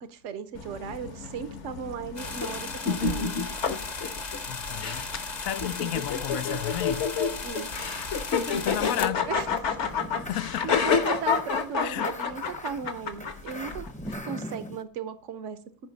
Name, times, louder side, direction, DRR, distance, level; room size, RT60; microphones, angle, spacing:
voice 1, 0.0-3.4 7.4-7.7 9.3-9.9 10.6-13.9 14.3-15.9, right 7 dB, 65° right, 1.2 m, -37 dB
sound 1, 0.5-14.1, left 5 dB, 60° left, 1.3 m, -29 dB
sound 2, 2.2-9.1, left 4 dB, 35° left, 0.9 m, -36 dB
voice 2, 4.5-7.1 8.6-9.3 10.2-11.1 11.8-12.2, left 12 dB, 80° left, 1.0 m, -33 dB
sound 3, 9.2-14.8, equal, 5° left, 0.7 m, -42 dB
14.5 x 5.1 x 4.0 m
omnidirectional pair, 1.4 m